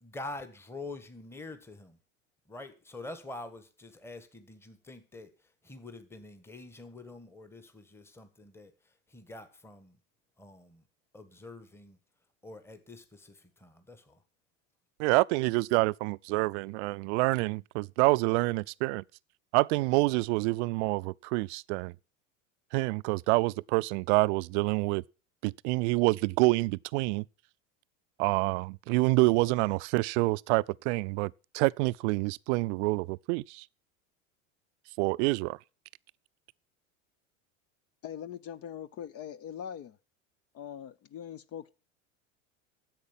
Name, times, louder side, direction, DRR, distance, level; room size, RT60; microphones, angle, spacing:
voice 1, 0.0-2.0 2.5-8.7 9.1-10.0 10.4-10.8 11.1-12.0 12.4-14.2, left 2 dB, 5° left, 1.4 m, -46 dB
voice 2, 15.0-19.0 19.5-21.9 22.7-25.0 25.4-27.2 28.2-33.6 35.0-35.6, right 23 dB, 60° right, 0.5 m, -27 dB
voice 3, 38.0-40.0 40.5-41.7, left 9 dB, 40° left, 0.6 m, -42 dB
10.5 x 7.9 x 7.2 m
hypercardioid pair, 95°, 39 cm